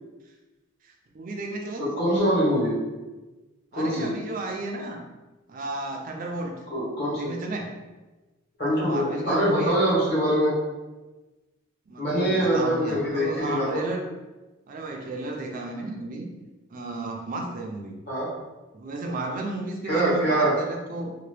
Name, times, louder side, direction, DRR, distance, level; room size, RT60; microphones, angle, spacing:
voice 1, 0.8-2.0 3.7-5.0 5.5-6.6 7.1-7.7 8.7-10.0 11.9-14.1 14.7-16.3 16.7-17.9 18.7-21.1, right 2 dB, 40° right, 1 dB, 0.4 m, -33 dB
voice 2, 1.8-2.8 3.7-4.1 6.7-7.3 8.6-10.5 12.0-13.9 18.1-18.3 19.8-20.5, equal, 50° left, -8 dB, 1.3 m, -24 dB
2.8 x 2.2 x 3.2 m, 1.1 s
head